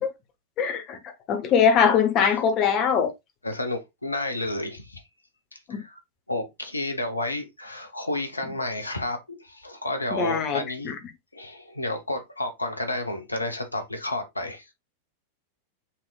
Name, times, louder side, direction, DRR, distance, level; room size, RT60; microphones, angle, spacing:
voice 1, 0.6-1.0 1.3-3.1 5.7-5.8 10.1-10.9, left 7 dB, 35° left, 1.1 m, -22 dB
voice 2, 3.4-5.0 5.5-6.0 6.3-10.9 11.3-14.7, left 1 dB, 80° left, 0.9 m, -31 dB
5.7 x 3.5 x 2.4 m
figure-of-eight pair, 90°, 0 cm